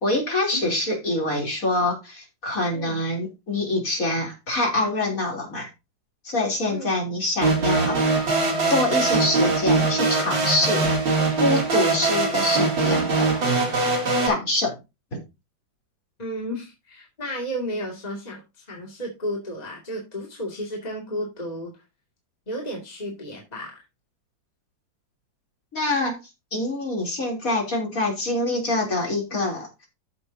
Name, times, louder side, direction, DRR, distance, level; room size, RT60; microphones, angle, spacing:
voice 1, 0.0-5.7 6.2-8.0 8.7-10.9 11.4-13.4 14.3-14.8 15.1-15.2 25.7-26.2 26.5-29.9, left 2 dB, 45° left, -1 dB, 3.9 m, -25 dB
sound 1, 7.4-14.3, right 3 dB, 75° right, 3.9 m, -22 dB
voice 2, 16.2-21.8 22.5-23.8, equal, 20° left, -1 dB, 2.5 m, -33 dB
13.5 x 6.6 x 2.8 m, 0.25 s
omnidirectional pair, 2.0 m